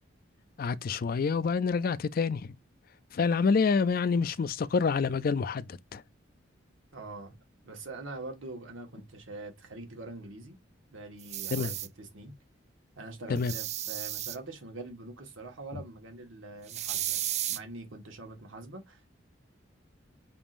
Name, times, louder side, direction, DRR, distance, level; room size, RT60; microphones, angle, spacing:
voice 1, 0.6-2.6 3.1-6.0 11.5-11.7 13.3-13.5, left 5 dB, 50° left, 0.4 m, -27 dB
voice 2, 6.9-7.4 7.6-10.6 10.9-12.3 13.0-17.2 17.5-19.0, right 2 dB, 85° right, 1.5 m, -44 dB
sound 1, 11.2-11.9 13.4-14.4 16.7-17.6, right 12 dB, 35° right, 0.4 m, -34 dB
5.8 x 3.6 x 2.5 m
head